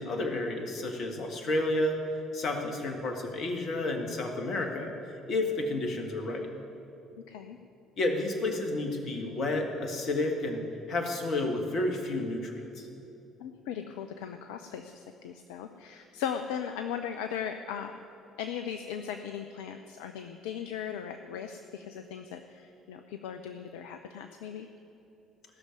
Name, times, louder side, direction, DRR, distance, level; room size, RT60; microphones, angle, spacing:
voice 1, 0.0-2.0 2.3-4.9 5.3-6.5 8.0-12.9, left 2 dB, 50° left, 4 dB, 1.8 m, -31 dB
voice 2, 7.3-7.6 13.4-17.9 18.4-24.7, left 8 dB, 65° left, 7 dB, 0.5 m, -38 dB
15.5 x 6.7 x 9.4 m, 2.9 s
figure-of-eight pair, 50°, 0 cm